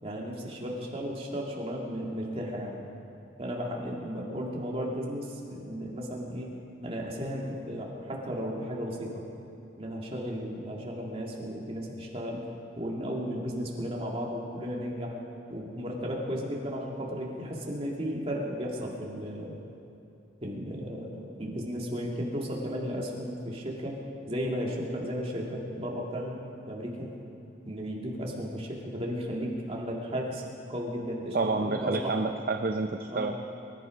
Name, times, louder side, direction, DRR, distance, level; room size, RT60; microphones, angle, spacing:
voice 1, 0.0-2.9 3.4-6.5 6.8-9.3 9.8-12.4 12.7-15.2 15.5-19.5 20.4-24.0 24.3-27.1 27.7-32.2 33.1-33.3, equal, 35° right, -2 dB, 2.4 m, -34 dB
voice 2, 31.3-33.4, right 3 dB, 50° right, 5 dB, 0.6 m, -29 dB
23.5 x 11.0 x 5.2 m, 2.7 s
head